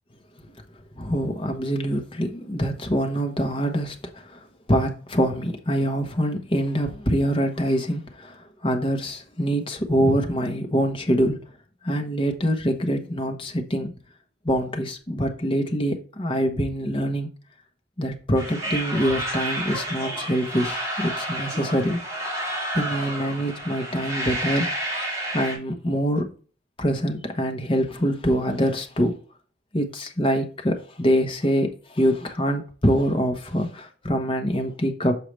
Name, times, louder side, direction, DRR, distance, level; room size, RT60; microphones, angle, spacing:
voice 1, 1.0-11.4 11.8-13.9 14.4-17.3 18.0-22.0 22.7-24.7 25.3-26.2 26.8-29.1 29.7-35.1, equal, 25° left, 1.1 m, -24 dB
sound 1, 18.3-25.5, right 1 dB, 15° right, 2.2 m, -30 dB
6.4 x 4.7 x 3.3 m
head